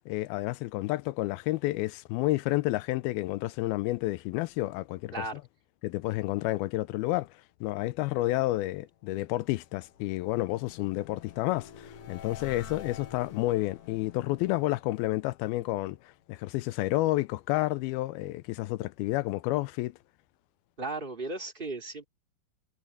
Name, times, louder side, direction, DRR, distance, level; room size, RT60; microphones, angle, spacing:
voice 1, 0.1-5.2 5.8-7.3 7.6-19.9, left 18 dB, 80° left, 2.3 m, -30 dB
sound 1, 9.1-16.2, left 8 dB, 65° left, 1.4 m, -49 dB
voice 2, 20.8-22.0, right 2 dB, 15° right, 1.8 m, -35 dB
omnidirectional pair, 4.6 m